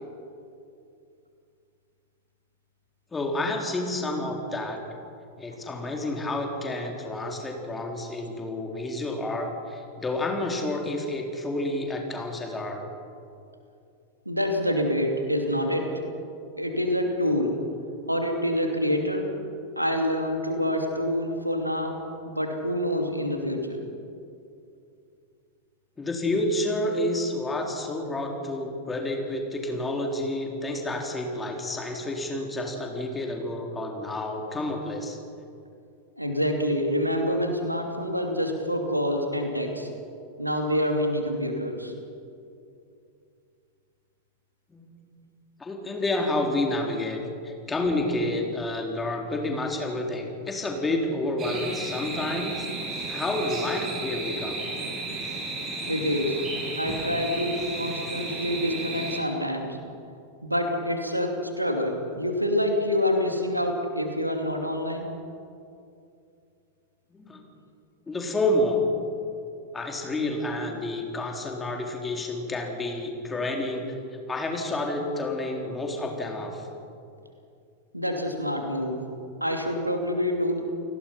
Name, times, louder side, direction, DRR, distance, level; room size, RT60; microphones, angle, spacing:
voice 1, 3.1-4.8 5.4-12.8 26.0-35.2 44.7-44.9 45.6-52.7 53.1-54.6 67.1-67.4 68.1-68.9 69.7-74.0 74.3-76.7, left 1 dB, 15° left, 1 dB, 3.8 m, -29 dB
voice 2, 14.3-15.9 16.6-17.6 18.1-19.3 19.8-22.0 22.3-23.8 36.2-39.9 40.4-41.9 55.9-56.4 56.8-59.8 60.4-65.1 77.9-79.1 79.4-80.6, equal, 90° right, 3 dB, 2.7 m, -27 dB
sound 1, 51.4-59.2, right 3 dB, 30° right, 5.1 m, -33 dB
30.0 x 18.5 x 5.8 m, 2.5 s
figure-of-eight pair, 90°, 0 cm